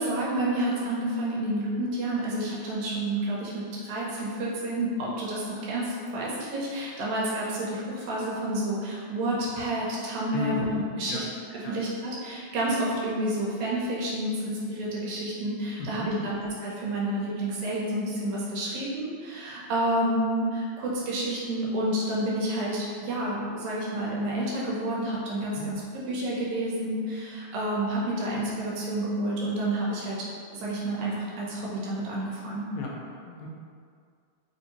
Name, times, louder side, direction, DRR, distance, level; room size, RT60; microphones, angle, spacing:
voice 1, 0.0-11.2 11.5-30.3 30.5-32.7, right 1 dB, 80° right, -5 dB, 2.1 m, -29 dB
voice 2, 10.3-10.6 11.0-11.2 11.6-11.7 15.8-16.1 32.7-33.5, left 5 dB, 85° left, -2 dB, 1.9 m, -35 dB
4.7 x 2.7 x 2.8 m, 2.2 s
omnidirectional pair, 3.3 m